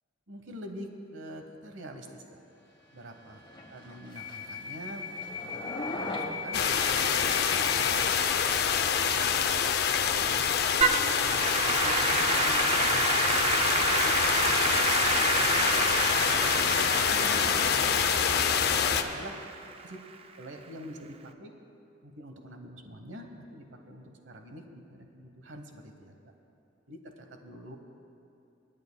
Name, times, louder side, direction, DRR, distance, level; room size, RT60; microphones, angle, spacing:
voice 1, 0.3-2.2 2.9-3.4 3.7-8.4 8.8-9.3 9.8-10.5 11.0-15.7 16.1-18.1 18.5-19.4 19.8-20.0 20.4-21.5 22.0-26.1 26.9-27.8, equal, 75° right, 4 dB, 1.1 m, -45 dB
sound 1, 2.7-19.0, left 3 dB, 25° left, 1.0 m, -41 dB
sound 2, 6.5-19.0, left 7 dB, 55° left, 0.5 m, -26 dB
Applause / Keyboard (musical), 10.8-20.1, right 5 dB, 30° right, 0.4 m, -29 dB
26.0 x 9.4 x 2.2 m, 2.6 s
head